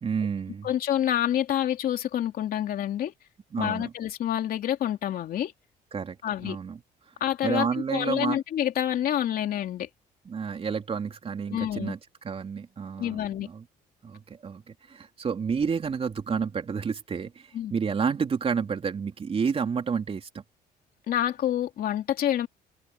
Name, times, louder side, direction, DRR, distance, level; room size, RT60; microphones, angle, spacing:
voice 1, 0.0-0.7 3.5-3.9 5.9-6.2 6.4-6.8 7.4-8.4 10.2-12.0 12.2-13.6 14.0-20.4, right 6 dB, 35° right, 3.4 m, -30 dB
voice 2, 0.6-3.1 3.6-5.5 6.2-6.6 7.2-9.9 11.5-11.9 13.0-13.5 17.5-17.7 21.1-22.5, left 11 dB, 60° left, 3.1 m, -27 dB
cardioid pair, 110°, 17 cm